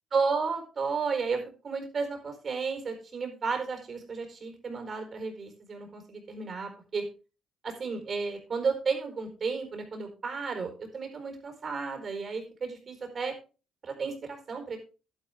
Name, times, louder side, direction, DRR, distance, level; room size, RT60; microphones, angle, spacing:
voice 1, 0.1-1.4 1.6-7.0 7.6-13.3 13.8-14.8, right 4 dB, 45° right, 5 dB, 4.4 m, -33 dB
11.5 x 10.5 x 3.6 m, 0.33 s
cardioid pair, 90°, 0 cm